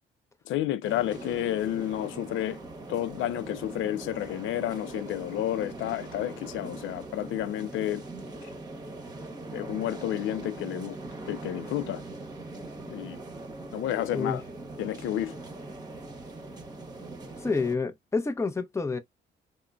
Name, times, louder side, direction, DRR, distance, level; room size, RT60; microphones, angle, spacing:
voice 1, 0.5-2.6 2.9-8.0 8.4-8.5 9.5-11.0 11.3-12.0 12.9-13.2 13.7-14.4 14.8-15.3, left 12 dB, 80° left, 0.4 m, -31 dB
sound 1, 0.8-17.7, right 2 dB, 20° right, 1.0 m, -41 dB
voice 2, 17.4-19.0, left 4 dB, 15° left, 0.6 m, -28 dB
3.6 x 2.0 x 2.3 m
cardioid pair, 90°, 20 cm